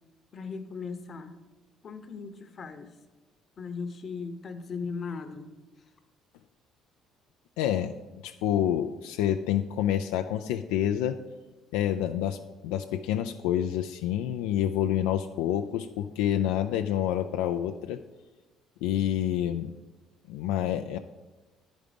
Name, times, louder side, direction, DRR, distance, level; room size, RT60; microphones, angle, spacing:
voice 1, 0.3-1.4 1.8-2.9 3.6-5.5, left 5 dB, 45° left, 8 dB, 0.9 m, -38 dB
voice 2, 7.6-7.9 8.2-11.2 11.7-18.0 18.8-19.7 20.3-21.0, left 11 dB, 85° left, 6 dB, 0.3 m, -28 dB
9.5 x 5.1 x 5.1 m, 1.1 s
supercardioid pair, 75°, 0 cm